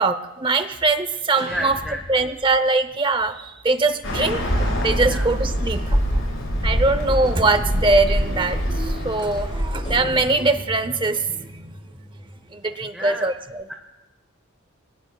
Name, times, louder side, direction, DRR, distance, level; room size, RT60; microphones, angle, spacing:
voice 1, 0.0-1.8 2.1-4.5 4.8-6.2 6.6-11.8 12.5-13.7, right 3 dB, 25° right, 11 dB, 0.7 m, -22 dB
sound 1, 1.3-2.6 4.6-5.7 7.2-8.3 9.8-12.5, left 1 dB, 30° left, 5.6 m, -37 dB
voice 2, 1.5-2.3 5.1-5.3 12.9-13.3, equal, ahead, 1 dB, 1.2 m, -31 dB
Bird, 4.0-10.2, equal, 80° left, 7.1 m, -24 dB
29.0 x 21.5 x 2.3 m, 1.1 s
head